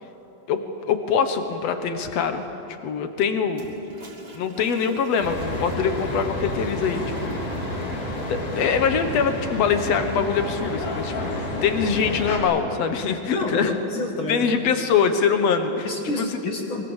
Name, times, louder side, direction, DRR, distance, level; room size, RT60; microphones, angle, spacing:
voice 1, 0.5-2.4 2.8-3.7 4.3-7.4 8.3-13.7 14.3-16.4, left 6 dB, 60° left, 7 dB, 1.8 m, -23 dB
Toilet flush, 3.5-10.7, right 1 dB, 40° right, 3.5 m, -45 dB
sound 1, 5.2-12.4, left 1 dB, 80° left, 5.6 m, -30 dB
voice 2, 13.3-14.5 15.8-16.8, left 2 dB, 40° left, 1 dB, 2.2 m, -29 dB
24.5 x 23.5 x 7.3 m, 3.0 s
omnidirectional pair, 4.3 m